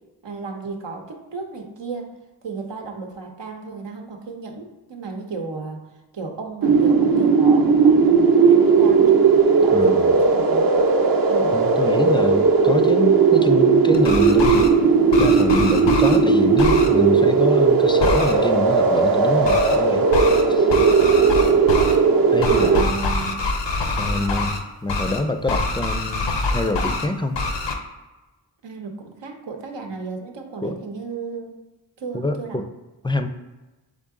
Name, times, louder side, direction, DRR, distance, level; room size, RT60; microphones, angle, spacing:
voice 1, 0.2-2.1 2.4-5.8 6.1-9.2 9.6-10.8 11.3-11.5 20.4-21.1 22.4-23.4 24.1-24.4 28.6-31.5 32.0-32.6, right 4 dB, 85° right, 2 dB, 0.8 m, -34 dB
sound 1, 6.6-22.8, right 5 dB, 55° right, 0.7 m, -16 dB
voice 2, 9.7-10.2 11.5-14.7 15.2-20.1 20.5-20.7 22.3-22.9 23.9-26.3 26.5-27.4 30.6-30.8 32.1-32.7 33.0-33.3, left 2 dB, 10° left, 8 dB, 0.3 m, -25 dB
sound 2, 13.9-14.7 15.1-16.2 16.6-16.9 18.0-18.3 19.4-19.8 20.1-20.4 20.7-22.0 22.4-24.6 24.9-25.2 25.5-27.1 27.3-27.7, left 3 dB, 90° left, 0.7 m, -25 dB
3.8 x 3.7 x 3.6 m, 1.1 s
cardioid pair, 50°, 42 cm